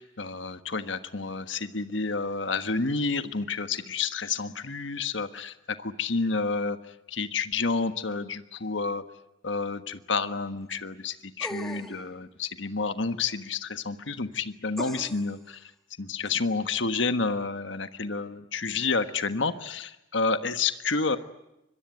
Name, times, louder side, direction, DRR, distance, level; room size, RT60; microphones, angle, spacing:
voice 1, 0.0-9.0 9.4-15.7 16.0-21.2, left 4 dB, 75° left, 10 dB, 1.4 m, -30 dB
sound 1, 11.4-12.1 14.8-15.4 16.2-16.3, equal, ahead, 3.1 m, -38 dB
25.0 x 22.5 x 9.5 m, 0.88 s
head